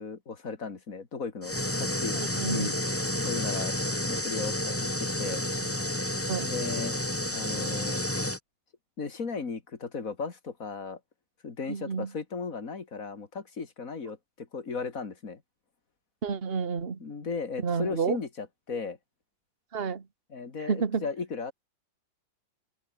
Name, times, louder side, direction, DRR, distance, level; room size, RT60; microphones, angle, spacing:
voice 1, 0.0-2.2 2.5-2.8 3.2-3.7 4.1-5.4 6.4-7.0 7.3-8.0 9.0-11.0 11.4-15.4 17.0-19.0 20.3-21.5, left 4 dB, 40° left, 2.8 m, -36 dB
sound 1, 1.4-8.4, left 1 dB, 5° left, 2.3 m, -30 dB
voice 2, 2.1-2.7 6.3-6.5 11.7-12.1 16.2-17.0 17.6-18.2 19.7-20.0 20.7-21.0, right 5 dB, 30° right, 1.7 m, -30 dB
omnidirectional pair, 2.2 m